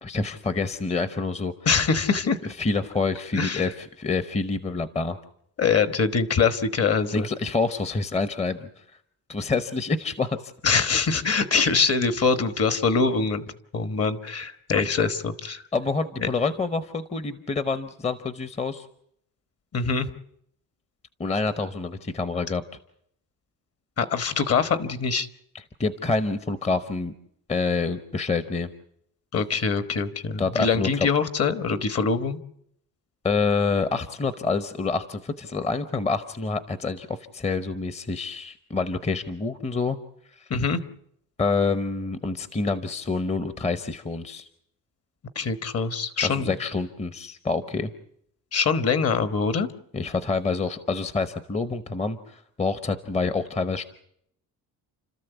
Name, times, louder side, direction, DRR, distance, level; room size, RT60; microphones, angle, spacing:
voice 1, 0.0-1.5 2.6-5.2 7.1-8.6 9.3-10.5 15.7-18.9 21.2-22.6 25.5-27.1 27.5-28.7 30.4-31.1 33.2-40.0 40.4-40.5 41.4-44.5 46.2-47.9 49.9-53.8, left 4 dB, 15° left, 12 dB, 0.9 m, -27 dB
voice 2, 1.6-2.4 3.3-3.7 5.6-7.3 10.6-13.4 13.7-15.6 16.2-16.3 19.7-20.1 24.0-25.3 29.3-32.4 40.5-40.8 45.3-46.5 48.5-49.7, left 5 dB, 40° left, 12 dB, 1.4 m, -23 dB
30.0 x 13.5 x 8.1 m, 0.71 s
cardioid pair, 145°, 37 cm